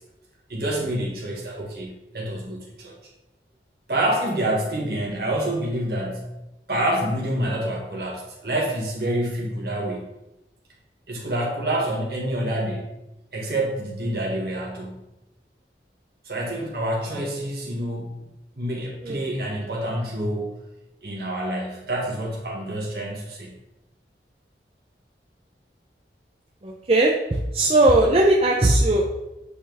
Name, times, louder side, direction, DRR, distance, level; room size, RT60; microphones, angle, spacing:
voice 1, 0.5-2.9 3.9-6.2 6.7-10.1 11.1-12.8 13.3-15.0 16.2-18.2 18.6-20.4 21.0-23.5, right 1 dB, 60° right, -2 dB, 1.8 m, -27 dB
voice 2, 26.6-29.2, right 2 dB, 35° right, -1 dB, 0.6 m, -19 dB
8.4 x 4.4 x 3.5 m, 0.94 s
head